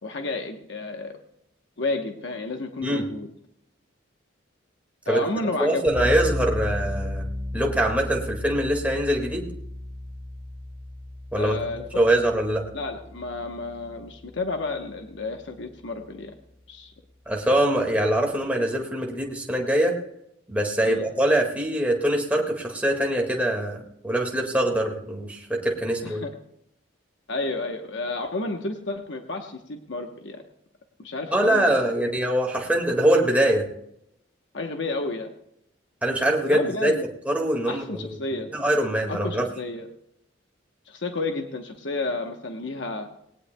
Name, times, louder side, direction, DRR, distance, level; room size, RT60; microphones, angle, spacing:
voice 1, 0.0-1.2 1.8-3.3 5.1-6.1 11.4-11.8 12.7-16.3 16.7-16.9 20.8-21.0 26.0-26.3 27.3-30.4 31.0-31.8 34.5-35.3 36.2-37.0 37.6-38.5 39.1-39.9 40.9-43.1, left 3 dB, 70° left, 4 dB, 1.0 m, -31 dB
voice 2, 5.6-7.2 7.5-9.5 11.3-11.6 11.9-12.7 17.3-20.0 20.5-26.3 31.3-33.7 36.0-36.9 37.3-39.5, right 1 dB, 5° right, 0 dB, 1.9 m, -23 dB
sound 1, 5.9-14.7, left 1 dB, 25° right, 3.1 m, -34 dB
19.5 x 18.0 x 2.2 m, 0.79 s
head